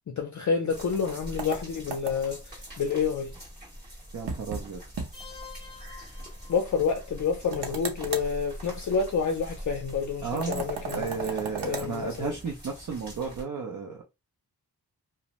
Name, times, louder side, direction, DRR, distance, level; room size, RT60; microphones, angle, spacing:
voice 1, 0.1-3.3 6.5-11.1 11.7-12.3, left 6 dB, 45° left, 0.5 m, -28 dB
sound 1, 0.7-13.4, equal, 25° right, 1.4 m, -44 dB
sound 2, 1.4-2.4 4.3-4.7 5.0-5.1 5.4-5.5 7.5-8.3 10.4-11.9, right 5 dB, 90° right, 0.7 m, -35 dB
voice 2, 4.1-4.8 10.2-10.6 10.9-14.0, right 5 dB, 50° right, 0.6 m, -33 dB
sound 3, 5.1-7.1, left 6 dB, 10° left, 0.7 m, -48 dB
2.6 x 2.0 x 2.9 m
wide cardioid pair, 160°, 40 cm